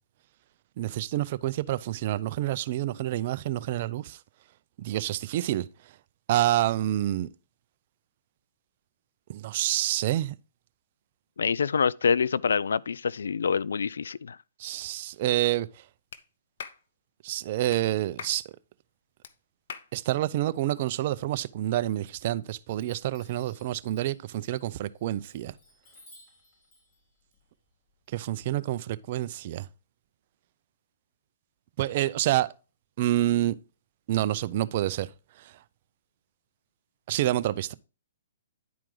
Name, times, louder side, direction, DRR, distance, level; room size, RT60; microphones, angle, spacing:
voice 1, 0.8-4.2 4.8-5.7 6.3-7.3 9.3-10.3 14.6-15.7 17.2-18.4 19.9-25.5 28.1-29.7 31.8-32.5 33.0-33.6 34.1-35.1 37.1-37.7, right 14 dB, 50° right, 0.5 m, -28 dB
voice 2, 11.4-14.4, left 6 dB, 80° left, 0.3 m, -26 dB
Clapping, 16.1-16.2 16.6-16.8 17.7-17.8 18.2-18.4 19.2-19.3 19.7-19.9, left 7 dB, 60° left, 0.8 m, -40 dB
Chime, 22.7-28.5, left 1 dB, 25° left, 3.9 m, -59 dB
10.5 x 4.6 x 3.8 m
hypercardioid pair, 140°, 0 cm